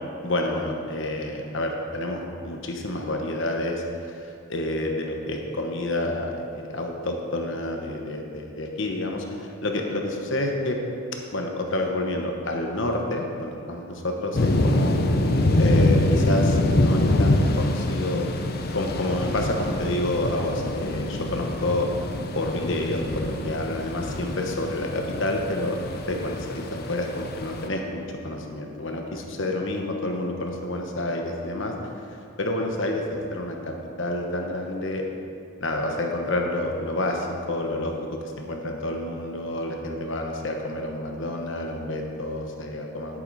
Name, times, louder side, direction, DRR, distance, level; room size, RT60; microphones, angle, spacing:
voice 1, 0.2-10.8 11.3-14.9 15.6-18.3 18.7-21.9 22.3-25.8 26.1-31.7 32.4-35.0 35.6-37.9 38.2-43.2, left 1 dB, 65° left, 2 dB, 1.1 m, -29 dB
sound 1, 14.3-27.7, left 1 dB, 45° left, 0.6 m, -25 dB
10.5 x 8.4 x 4.1 m, 2.5 s
head